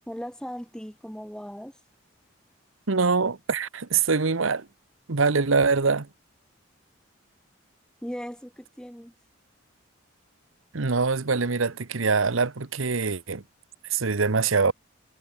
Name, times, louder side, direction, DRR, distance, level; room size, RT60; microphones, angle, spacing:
voice 1, 0.1-1.8 8.0-9.1, equal, 5° left, 3.3 m, -38 dB
voice 2, 2.9-4.7 5.1-6.1 10.7-13.4 13.9-14.7, right 4 dB, 85° right, 1.0 m, -24 dB
head